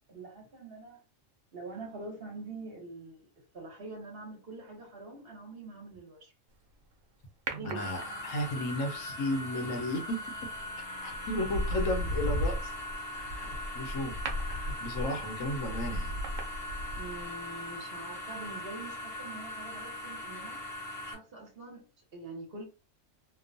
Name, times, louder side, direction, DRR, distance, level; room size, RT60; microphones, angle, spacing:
voice 1, 0.1-1.0 1.5-6.3 7.5-8.2 16.9-20.6 21.1-22.6, right 3 dB, 50° right, 1.0 m, -45 dB
sound 1, 7.5-8.5 10.4-10.6 11.1-17.3 17.6-17.7, equal, 85° right, 1.0 m, -35 dB
voice 2, 7.6-10.2 11.0-12.7 13.0-14.2 14.5-16.2, left 1 dB, 80° left, 1.1 m, -34 dB
sound 2, 7.8-21.1, left 1 dB, 55° left, 0.9 m, -40 dB
2.9 x 2.0 x 2.5 m
omnidirectional pair, 1.3 m